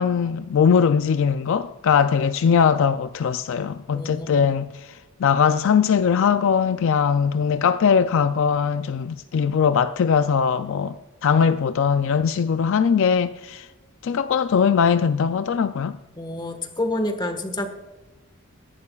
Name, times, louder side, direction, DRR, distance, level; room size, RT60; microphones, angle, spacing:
voice 1, 0.0-11.0 11.2-13.7 14.0-16.0, left 6 dB, 65° left, 0.4 m, -20 dB
voice 2, 3.9-4.5 16.2-17.7, left 1 dB, 20° left, 1.4 m, -28 dB
22.5 x 11.5 x 2.4 m
head